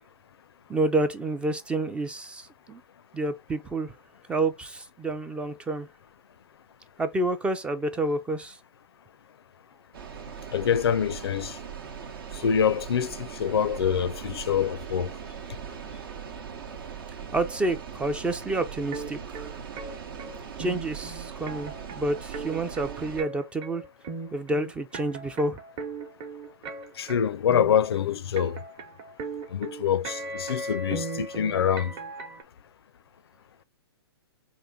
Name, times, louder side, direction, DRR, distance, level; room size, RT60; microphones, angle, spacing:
voice 1, 0.7-2.8 3.1-3.9 4.3-5.9 7.0-8.6 17.3-19.6 20.6-23.8 24.3-25.6, right 2 dB, 10° right, 0.3 m, -29 dB
sound 1, 9.9-23.2, right 7 dB, 60° right, 0.9 m, -40 dB
voice 2, 10.5-11.6 12.3-15.1 27.0-28.6 29.5-31.9, left 8 dB, 75° left, 0.4 m, -25 dB
sound 2, 18.9-32.4, right 3 dB, 35° right, 0.9 m, -38 dB
3.7 x 2.5 x 3.6 m
hypercardioid pair, 125°, 13 cm